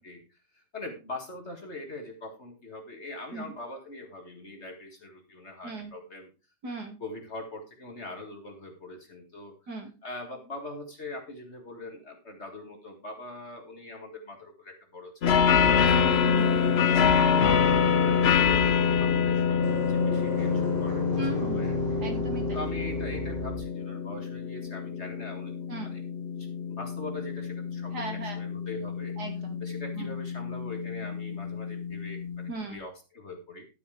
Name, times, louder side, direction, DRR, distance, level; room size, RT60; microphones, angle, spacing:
voice 1, 0.0-6.3 7.0-9.5 10.0-17.7 18.1-19.6 19.9-22.0 22.5-25.6 25.8-26.0 26.4-29.1 29.6-33.7, left 2 dB, 35° left, 3 dB, 2.1 m, -42 dB
voice 2, 6.6-7.0 9.7-9.9 15.8-16.6 21.1-21.6 22.0-22.6 25.7-25.9 27.9-28.4 29.2-29.6 30.0-30.1 32.5-32.8, right 1 dB, 60° right, 3 dB, 3.0 m, -37 dB
sound 1, 15.2-32.5, left 7 dB, 65° left, 0.6 m, -26 dB
sound 2, 15.6-23.6, right 1 dB, 25° right, 3.2 m, -34 dB
12.0 x 9.4 x 3.4 m, 0.31 s
omnidirectional pair, 2.0 m